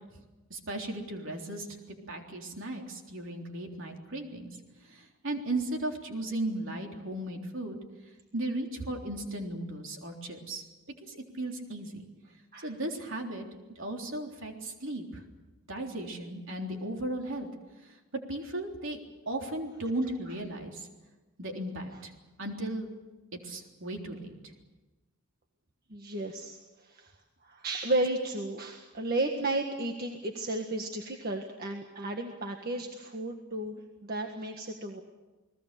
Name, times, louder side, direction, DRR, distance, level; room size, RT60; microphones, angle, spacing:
voice 1, 0.5-1.8 2.1-4.5 4.8-7.8 8.3-10.6 11.1-12.0 12.6-13.5 13.8-15.2 15.7-17.5 17.8-19.0 19.3-20.9 21.4-22.1 22.4-22.9 23.3-24.5, right 1 dB, 60° right, 2 dB, 3.6 m, -36 dB
voice 2, 25.9-27.1 27.4-35.0, right 2 dB, 45° right, 3 dB, 1.7 m, -33 dB
30.0 x 19.5 x 6.9 m, 1.2 s
head